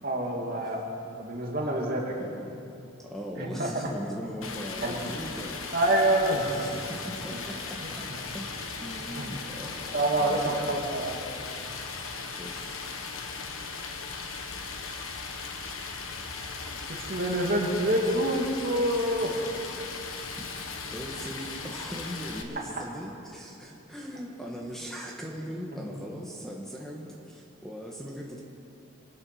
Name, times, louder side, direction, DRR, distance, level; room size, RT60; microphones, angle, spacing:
voice 1, 0.0-0.9 1.2-2.3 3.4-3.9 4.8-5.1 5.7-6.7 7.3-7.4 7.8-7.9 9.2-9.3 9.9-11.2 16.7-16.8 17.1-19.4 25.7-25.8, right 1 dB, 45° right, -1 dB, 2.6 m, -27 dB
voice 2, 2.2-2.5 3.1-5.6 6.5-8.0 8.3-10.7 12.4-12.9 16.0-16.1 20.9-28.4, equal, ahead, -2 dB, 1.3 m, -40 dB
Stream, 4.4-22.4, left 4 dB, 75° left, 1.4 m, -38 dB
26.0 x 8.7 x 6.3 m, 2.7 s
head